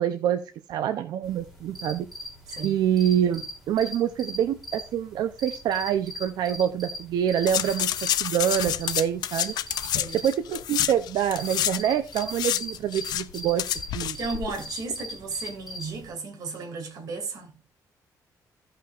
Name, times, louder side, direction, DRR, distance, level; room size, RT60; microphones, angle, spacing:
voice 1, 0.0-2.1 2.6-9.5 10.1-13.7 13.9-14.2, right 10 dB, 85° right, 0.6 m, -26 dB
sound 1, 1.2-16.1, left 1 dB, ahead, 3.2 m, -41 dB
voice 2, 2.5-2.8 9.9-10.2 14.2-17.5, right 4 dB, 60° right, 2.5 m, -34 dB
sound 2, 7.5-11.8 12.1-14.7 14.9-15.0, left 12 dB, 80° left, 0.5 m, -29 dB
16.0 x 5.7 x 2.5 m
cardioid pair, 160°, 7 cm